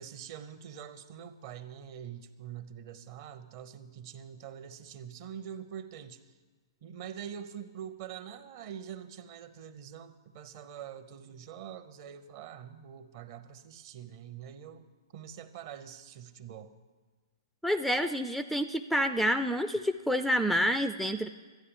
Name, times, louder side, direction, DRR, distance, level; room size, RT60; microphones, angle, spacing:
voice 1, 0.0-6.2 6.8-14.9 15.1-16.7, right 9 dB, 45° right, 10 dB, 0.9 m, -45 dB
voice 2, 17.6-21.3, equal, ahead, 10 dB, 0.4 m, -28 dB
13.0 x 9.9 x 7.2 m, 1.4 s
figure-of-eight pair, 115°, 2 cm